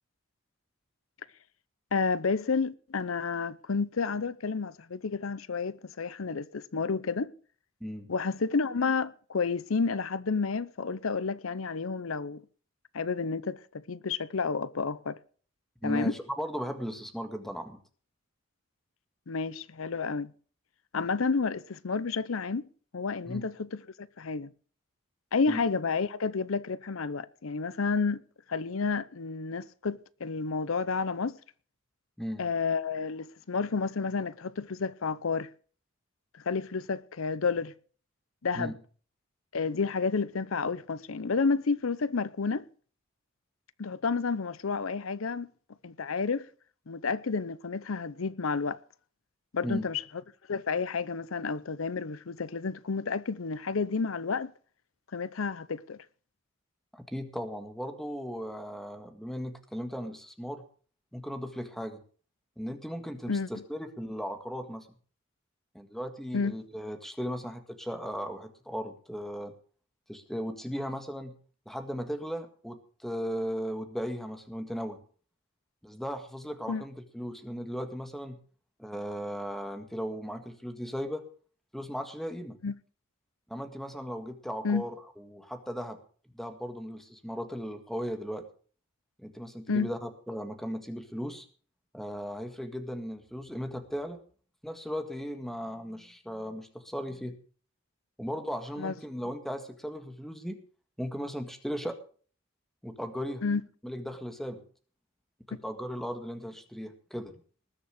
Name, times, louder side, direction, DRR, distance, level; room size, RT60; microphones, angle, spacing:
voice 1, 1.9-7.3 8.1-12.4 12.9-15.2 15.8-16.1 19.3-20.3 20.9-22.7 22.9-24.5 25.3-28.2 28.5-31.4 32.4-35.5 36.5-37.7 38.4-38.7 39.5-42.6 43.8-45.5 45.8-46.5 46.9-48.8 49.5-50.0 50.5-54.5 55.1-56.0 63.3-63.5 66.3-66.6 76.7-76.8 82.6-82.7 84.6-84.9 89.7-89.9 98.8-98.9 103.4-103.6, left 4 dB, 85° left, 0.7 m, -30 dB
voice 2, 7.8-8.1 15.8-17.8 23.3-23.5 25.5-25.6 32.2-32.4 38.5-38.7 49.6-49.8 56.9-60.6 61.1-62.0 62.6-64.9 65.7-69.5 70.1-71.4 71.7-75.0 75.8-78.4 78.8-81.3 81.7-82.6 83.5-86.0 86.3-88.5 89.2-91.5 91.9-94.2 94.6-97.4 98.2-100.6 101.0-102.0 102.8-103.4 103.8-104.6 105.5-107.3, equal, ahead, 1.8 m, -37 dB
19.5 x 7.0 x 6.4 m
head